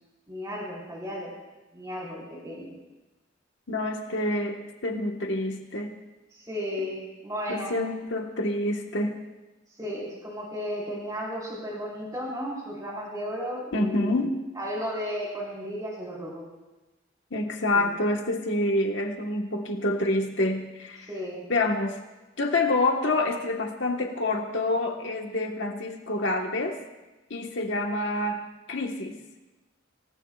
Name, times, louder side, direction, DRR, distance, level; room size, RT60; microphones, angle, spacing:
voice 1, 0.3-1.3 1.7-2.7 6.3-7.8 9.8-14.3 14.5-16.4 17.7-17.8 21.0-21.4, equal, 20° right, -5 dB, 4.7 m, -34 dB
voice 2, 3.7-6.0 7.5-9.2 13.7-14.4 17.3-21.1 21.5-22.0 22.4-26.8 27.3-29.2, left 2 dB, 65° left, 1 dB, 1.5 m, -27 dB
27.0 x 18.0 x 2.5 m, 1.1 s
head